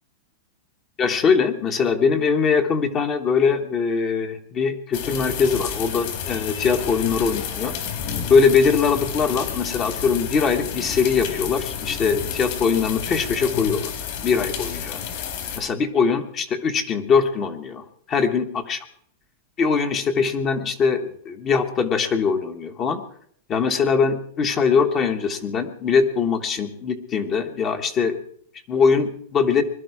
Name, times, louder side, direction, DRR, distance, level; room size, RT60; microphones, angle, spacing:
voice 1, 1.0-7.7 8.3-13.9 14.2-15.0 15.6-18.8 19.6-23.0 23.5-28.2 28.7-29.6, left 5 dB, 25° left, 6 dB, 1.2 m, -21 dB
sound 1, 4.9-15.6, left 7 dB, 50° left, 3.8 m, -30 dB
21.5 x 12.0 x 4.8 m, 0.63 s
supercardioid pair, 165°, 0 cm